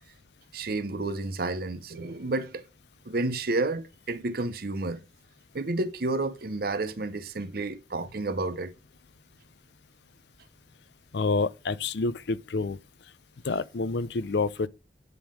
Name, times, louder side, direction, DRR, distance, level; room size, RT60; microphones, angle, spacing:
voice 1, 0.5-2.6 3.1-5.0 5.5-8.7, right 2 dB, 55° right, 0.7 m, -30 dB
voice 2, 11.1-12.8 13.4-14.7, left 3 dB, 65° left, 0.5 m, -28 dB
9.9 x 3.7 x 5.0 m
head